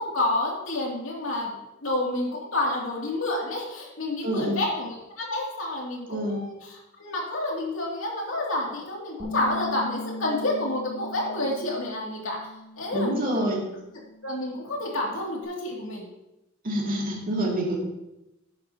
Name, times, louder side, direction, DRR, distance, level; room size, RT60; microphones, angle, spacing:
voice 1, 0.0-1.5 1.8-12.4 12.8-13.4 14.2-16.1, left 2 dB, 90° left, -2 dB, 2.5 m, -29 dB
voice 2, 4.2-4.6 6.1-6.4 12.9-13.6 16.6-17.8, right 1 dB, 45° right, -3 dB, 2.5 m, -27 dB
Bass guitar, 9.2-13.5 13.8-15.4, left 1 dB, 25° right, 2.8 m, -40 dB
12.0 x 8.8 x 2.8 m, 0.93 s
head